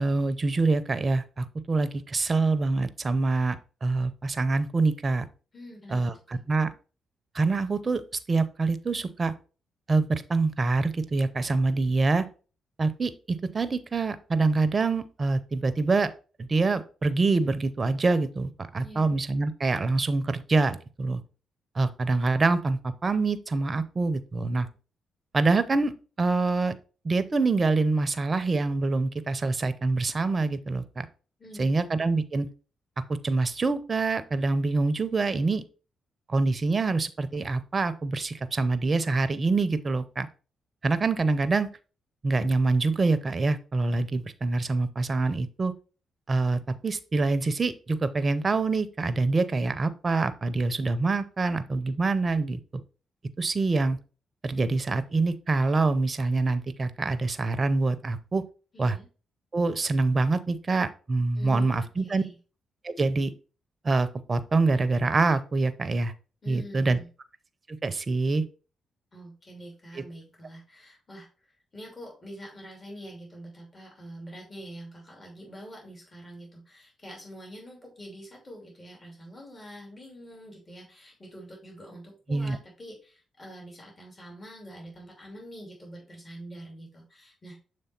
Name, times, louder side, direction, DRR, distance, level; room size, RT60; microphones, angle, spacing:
voice 1, 0.0-5.2 5.9-6.1 6.5-6.7 7.3-8.0 8.3-9.3 9.9-12.2 12.8-16.1 16.4-21.2 21.8-24.7 25.3-25.9 26.2-26.7 27.0-31.1 31.6-32.5 33.2-35.6 36.3-40.3 40.8-41.7 42.2-45.7 46.3-52.6 53.4-54.0 54.4-58.4 58.8-59.0 59.5-62.2 62.8-63.3 63.8-66.1 66.5-67.0 67.7-68.4 70.0-70.1 82.3-82.6, right 3 dB, 40° right, 13 dB, 0.7 m, -25 dB
voice 2, 5.5-6.4 18.8-19.1 31.4-31.8 58.7-59.1 61.3-62.3 66.4-67.1 69.1-87.6, equal, 35° left, 0 dB, 2.7 m, -45 dB
6.9 x 3.2 x 4.3 m, 0.36 s
supercardioid pair, 50°, 0 cm